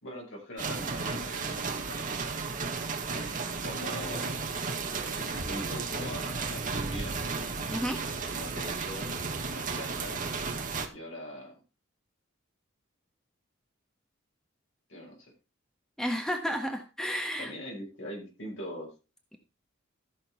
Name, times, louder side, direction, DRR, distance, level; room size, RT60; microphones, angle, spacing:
voice 1, 0.0-2.4 3.1-4.5 5.0-7.2 8.3-9.1 9.5-10.2 10.9-11.6 14.9-15.3 17.4-18.9, equal, 65° left, -1 dB, 5.8 m, -42 dB
sound 1, 0.6-10.9, right 4 dB, 40° right, 1.8 m, -34 dB
voice 2, 7.7-8.0 16.0-17.5, equal, 5° left, 4 dB, 1.4 m, -32 dB
14.0 x 6.5 x 4.5 m, 0.30 s
head